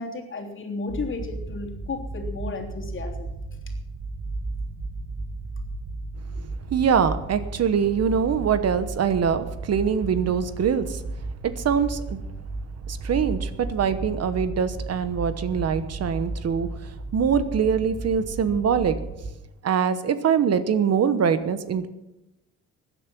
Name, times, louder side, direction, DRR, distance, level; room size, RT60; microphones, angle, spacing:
voice 1, 0.0-3.3, left 3 dB, 40° left, 1 dB, 3.2 m, -33 dB
sound 1, 0.9-19.3, right 2 dB, 35° right, 1.8 m, -34 dB
voice 2, 6.7-11.0 11.4-12.2 12.9-16.7 17.1-19.0 19.6-21.9, right 7 dB, 55° right, 12 dB, 1.1 m, -23 dB
16.0 x 10.0 x 6.1 m, 0.94 s
cardioid pair, 90°, 30 cm